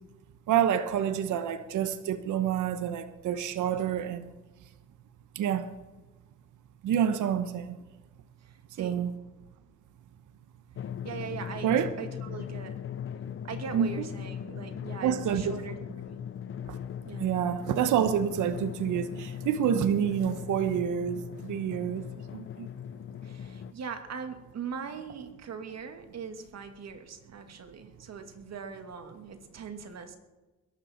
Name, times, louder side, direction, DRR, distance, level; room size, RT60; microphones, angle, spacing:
voice 1, 0.5-4.3 5.3-5.6 6.8-7.8 8.8-9.1 11.6-11.9 13.7-13.9 15.0-15.6 16.7-16.8 17.2-22.0 22.3-22.7, right 9 dB, 80° right, 1.1 m, -28 dB
voice 2, 8.4-9.0 11.0-12.8 13.4-15.8 16.1-16.2 17.0-17.3 23.2-30.2, right 6 dB, 60° right, 2.2 m, -41 dB
Drum, 10.8-23.7, left 8 dB, 45° left, 0.6 m, -39 dB
21.5 x 12.0 x 4.4 m
cardioid pair, 90°, 30 cm